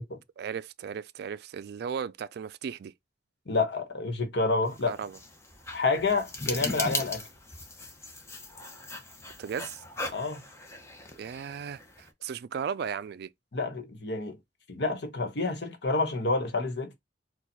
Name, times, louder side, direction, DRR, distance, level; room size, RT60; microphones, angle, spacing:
voice 1, 0.4-2.9 4.9-5.2 9.4-9.8 11.2-11.8 12.2-13.3, right 7 dB, 60° right, 0.3 m, -35 dB
voice 2, 3.5-5.0 5.7-7.2 10.1-10.4 13.5-14.4 14.7-16.9, left 3 dB, 70° left, 1.2 m, -28 dB
sound 1, 4.7-12.1, left 2 dB, 15° left, 0.8 m, -38 dB
4.4 x 2.3 x 4.1 m
head